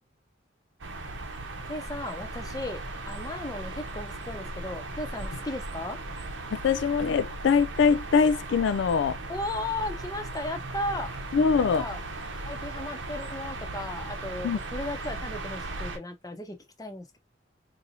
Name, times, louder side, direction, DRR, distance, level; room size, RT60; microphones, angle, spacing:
sound 1, 0.8-16.0, right 2 dB, 70° right, 0.8 m, -37 dB
voice 1, 1.6-6.0 9.3-11.1 11.5-12.0 12.4-17.2, left 1 dB, 20° left, 0.8 m, -36 dB
voice 2, 6.5-9.2 11.3-11.9 14.4-14.6, left 5 dB, 65° left, 0.3 m, -23 dB
4.0 x 2.8 x 2.7 m
head